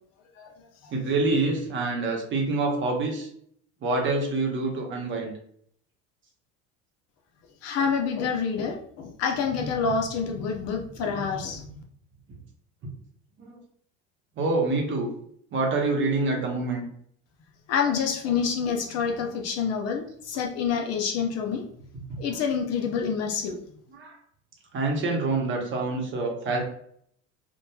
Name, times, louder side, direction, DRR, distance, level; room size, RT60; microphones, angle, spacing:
voice 1, 0.9-3.3 3.8-5.3 13.4-13.6 14.4-15.1 15.5-16.8 24.0-24.2 24.7-26.6, right 3 dB, 35° right, 0 dB, 0.8 m, -26 dB
voice 2, 7.6-11.7 17.7-21.7 22.2-23.6, left 6 dB, 50° left, 3 dB, 0.5 m, -27 dB
2.8 x 2.2 x 2.2 m, 0.64 s
supercardioid pair, 120°, 33 cm